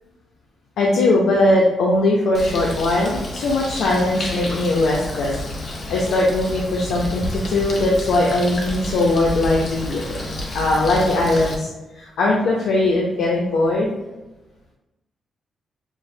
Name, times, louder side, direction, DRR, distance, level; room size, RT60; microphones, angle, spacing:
voice 1, 0.8-5.3 5.9-10.2 10.5-13.9, left 2 dB, 90° left, -3 dB, 0.6 m, -20 dB
Bird, 2.3-11.5, left 1 dB, 45° left, 0.7 m, -30 dB
5.9 x 2.1 x 2.6 m, 1.1 s
wide cardioid pair, 145°, 0 cm